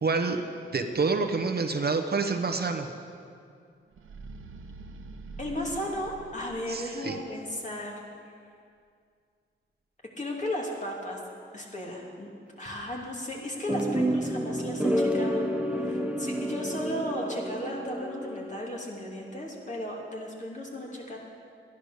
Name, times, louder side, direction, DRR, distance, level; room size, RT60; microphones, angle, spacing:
voice 1, 0.0-0.4 0.7-2.9 6.7-7.2, right 4 dB, 50° right, 4 dB, 1.0 m, -27 dB
sound 1, 3.9-7.2, right 4 dB, 85° right, 0.8 m, -45 dB
voice 2, 5.4-8.0 10.2-11.2 11.5-12.3 12.6-21.2, left 1 dB, 35° left, -2 dB, 2.8 m, -35 dB
sound 2, 13.7-18.8, equal, 5° right, 1.0 m, -29 dB
12.0 x 11.0 x 6.6 m, 2.3 s
cardioid pair, 60°, 20 cm